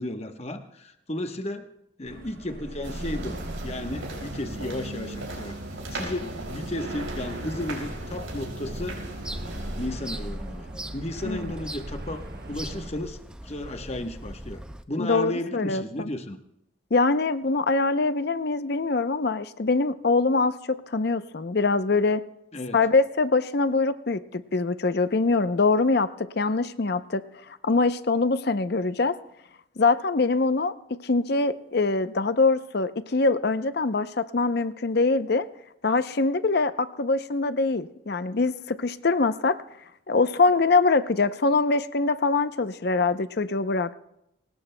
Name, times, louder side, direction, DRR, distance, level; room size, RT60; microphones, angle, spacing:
voice 1, 0.0-1.7 2.0-5.6 5.9-9.0 9.8-10.7 10.9-16.4 22.5-22.8, left 1 dB, 30° left, 6 dB, 1.0 m, -34 dB
sound 1, 2.0-12.9, right 1 dB, 50° right, 1.0 m, -40 dB
sound 2, 2.8-9.9, right 1 dB, 85° right, 4.9 m, -37 dB
sound 3, 9.2-14.8, right 1 dB, 5° right, 0.4 m, -40 dB
voice 2, 15.0-16.1 16.9-22.2 22.7-29.2 29.8-30.7 31.0-35.5 35.8-39.6 40.1-43.9, left 3 dB, 50° left, 12 dB, 0.6 m, -23 dB
23.5 x 19.0 x 2.2 m, 0.83 s
head